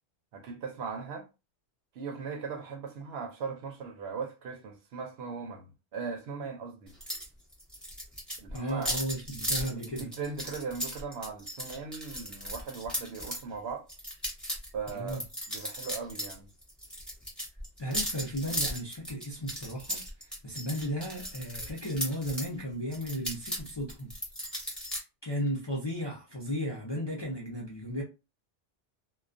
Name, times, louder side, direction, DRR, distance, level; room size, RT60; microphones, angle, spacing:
voice 1, 0.3-1.3 1.9-6.9 8.4-8.9 9.6-9.7 10.2-13.9 14.7-15.2 15.5-16.5, right 5 dB, 70° right, 0.8 m, -38 dB
sound 1, 7.0-7.3 7.5-13.4 13.9-16.4 16.6-22.5 22.9-25.0, equal, ahead, 0.8 m, -36 dB
voice 2, 8.5-10.1 14.9-15.2 17.8-24.1 25.2-28.0, equal, 35° left, 0.4 m, -35 dB
2.2 x 2.2 x 2.4 m
omnidirectional pair, 1.2 m